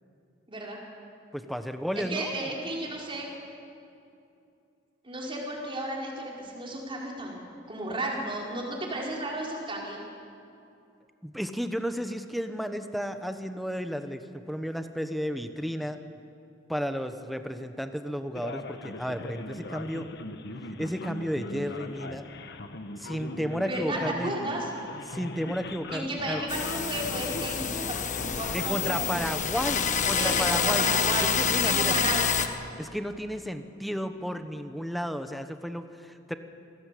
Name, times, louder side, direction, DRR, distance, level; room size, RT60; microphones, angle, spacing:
voice 1, 0.5-0.8 2.0-3.3 5.0-7.4 7.7-10.0 23.6-24.7 25.9-29.3 30.1-31.3 31.6-32.3, right 1 dB, 25° right, -2 dB, 4.9 m, -33 dB
voice 2, 1.3-2.5 11.2-16.0 16.7-20.0 20.8-22.3 23.0-24.3 25.1-26.4 28.5-30.9 31.2-32.2 32.8-36.3, equal, ahead, 8 dB, 1.0 m, -33 dB
Male speech man speaking, 18.4-30.3, left 2 dB, 60° left, 1.5 m, -40 dB
sound 1, 26.5-32.5, left 6 dB, 40° left, 1.4 m, -27 dB
26.0 x 17.5 x 8.5 m, 2.6 s
head